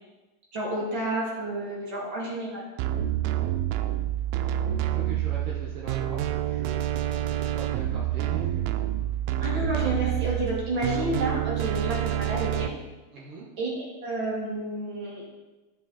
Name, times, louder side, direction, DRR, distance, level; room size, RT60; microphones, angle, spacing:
voice 1, 0.5-2.6 9.4-12.7 13.6-13.7 14.0-15.3, right 1 dB, 35° right, -4 dB, 2.8 m, -30 dB
sound 1, 2.8-12.7, right 12 dB, 90° right, 2.4 m, -28 dB
voice 2, 4.8-8.6 13.1-13.5, right 4 dB, 65° right, -5 dB, 1.5 m, -40 dB
14.0 x 5.4 x 4.2 m, 1.1 s
omnidirectional pair, 4.2 m